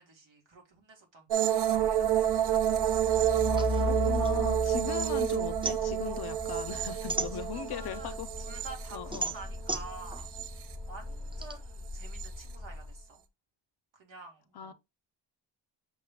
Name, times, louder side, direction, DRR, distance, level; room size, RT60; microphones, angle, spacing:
voice 1, 0.0-2.4 4.6-4.8 7.3-10.3 10.9-13.2 13.9-14.7, right 3 dB, 80° right, 1.8 m, -49 dB
sound 1, 1.3-9.5 9.9-10.7 12.0-12.3, right 11 dB, 60° right, 0.6 m, -29 dB
Truck, 1.6-13.0, left 3 dB, 5° left, 1.3 m, -38 dB
voice 2, 3.5-8.3 8.9-9.3 14.5-14.7, left 10 dB, 60° left, 0.6 m, -39 dB
sound 2, 3.6-5.1 5.4-7.9 8.4-11.5, right 3 dB, 10° right, 0.4 m, -37 dB
6.1 x 2.3 x 3.5 m
wide cardioid pair, 155°, 44 cm